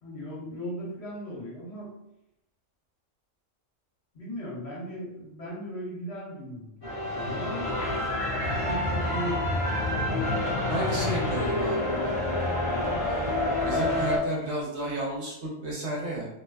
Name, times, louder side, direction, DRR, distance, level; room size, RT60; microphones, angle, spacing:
voice 1, 0.0-1.9 4.1-7.8 8.3-9.5 10.5-11.0 12.7-13.0, equal, 60° left, -7 dB, 1.2 m, -37 dB
sound 1, 6.8-14.2, left 1 dB, 30° left, 0.7 m, -28 dB
voice 2, 10.7-12.0 13.0-13.2 13.6-16.3, right 1 dB, 60° right, -5 dB, 1.0 m, -32 dB
2.6 x 2.1 x 2.2 m, 0.85 s
omnidirectional pair, 1.3 m